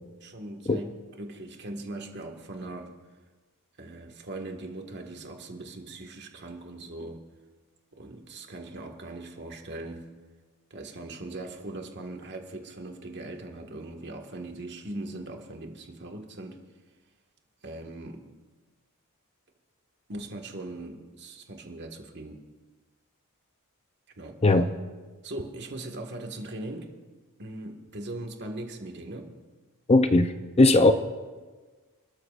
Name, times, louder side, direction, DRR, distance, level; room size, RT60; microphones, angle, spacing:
voice 1, 0.2-2.9 3.8-7.2 7.9-10.0 10.7-16.6 17.6-18.3 20.1-22.4 24.2-24.4 25.2-26.9 27.4-29.3, right 2 dB, 50° right, 1.8 m, -40 dB
voice 2, 29.9-30.9, left 2 dB, 30° left, 0.6 m, -19 dB
29.5 x 13.0 x 2.5 m
head